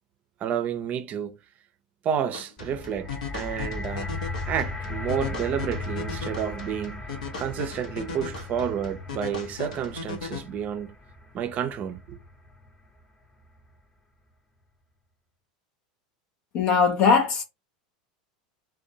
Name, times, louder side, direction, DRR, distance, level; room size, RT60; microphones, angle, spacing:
voice 1, 0.4-1.4 2.0-4.1 4.5-7.0 7.4-10.9 11.3-12.2, right 8 dB, 40° right, 0.5 m, -30 dB
sound 1, 2.3-10.4, left 5 dB, 85° left, 0.8 m, -38 dB
sound 2, 2.6-12.8 13.6-13.7, left 2 dB, 20° left, 0.8 m, -37 dB
voice 2, 16.5-17.4, left 5 dB, 50° left, 0.6 m, -20 dB
2.5 x 2.2 x 2.8 m
hypercardioid pair, 95°, 4 cm